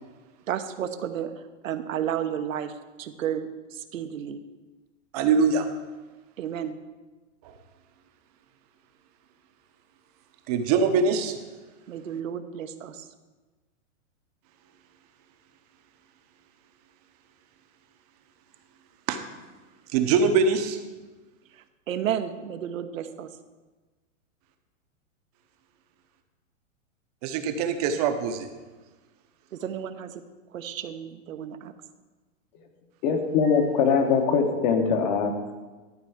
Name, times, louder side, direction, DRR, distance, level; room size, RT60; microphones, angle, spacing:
voice 1, 0.5-1.3 1.6-2.7 3.0-4.4 6.4-6.8 11.9-13.1 21.9-23.3 29.5-30.2 30.5-31.7, right 9 dB, 90° right, 9 dB, 0.9 m, -32 dB
voice 2, 5.1-5.7 7.4-7.5 10.5-11.4 19.1-19.2 19.9-20.8 27.2-28.5, right 5 dB, 30° right, 7 dB, 0.7 m, -23 dB
voice 3, 33.0-35.3, left 6 dB, 35° left, 5 dB, 1.2 m, -22 dB
12.0 x 4.5 x 7.2 m, 1.3 s
hypercardioid pair, 160°, 39 cm